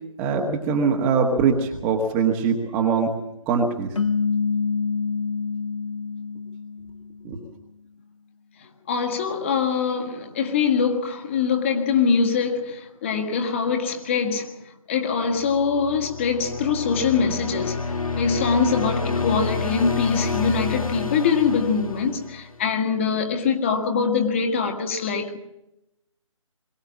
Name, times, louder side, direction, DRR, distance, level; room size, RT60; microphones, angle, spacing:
voice 1, 0.2-3.1 3.5-3.9 7.2-7.4, right 5 dB, 10° right, 1.4 m, -22 dB
sound 1, 4.0-7.3, left 5 dB, 65° left, 1.2 m, -26 dB
voice 2, 8.9-14.6 14.9-25.4, left 5 dB, 20° left, 1.8 m, -23 dB
sound 2, 15.3-22.7, left 4 dB, 85° left, 2.1 m, -29 dB
22.5 x 17.0 x 7.4 m
figure-of-eight pair, 150°, 17 cm